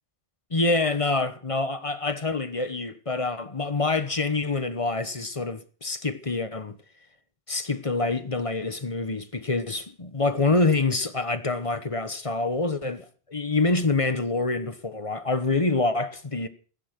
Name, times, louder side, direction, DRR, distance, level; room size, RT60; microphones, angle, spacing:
voice 1, 0.5-6.8 7.5-16.5, left 3 dB, 30° left, 1.1 m, -26 dB
15.5 x 10.5 x 6.4 m
omnidirectional pair, 1.2 m